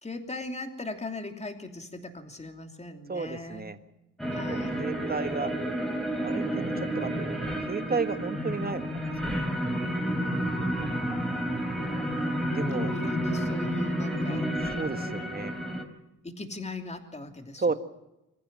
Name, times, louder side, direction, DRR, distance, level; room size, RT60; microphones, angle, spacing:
voice 1, 0.0-3.6 4.3-4.8 12.7-14.5 16.2-17.7, left 2 dB, 20° left, 5 dB, 3.1 m, -39 dB
voice 2, 3.1-3.8 4.5-5.5 6.2-7.4 7.7-9.4 12.5-12.9 14.8-15.5 17.6-17.7, right 4 dB, 30° right, 10 dB, 1.6 m, -32 dB
sound 1, 4.2-15.8, equal, ahead, 4.2 m, -30 dB
25.5 x 15.0 x 7.6 m, 0.93 s
cardioid pair, 95°, 32 cm